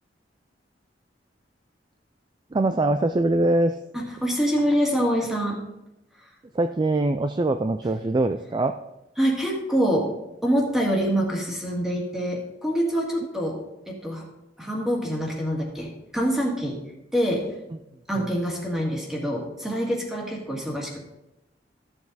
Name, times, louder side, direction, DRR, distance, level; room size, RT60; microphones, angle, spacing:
voice 1, 2.5-3.8 6.5-8.7, right 2 dB, 25° right, 8 dB, 0.3 m, -23 dB
voice 2, 3.9-5.6 6.2-6.3 9.2-10.1 10.4-13.6 13.9-14.3 14.6-16.8 17.1-17.5 18.1-21.0, equal, ahead, -2 dB, 2.1 m, -25 dB
13.5 x 7.1 x 4.1 m, 0.92 s
head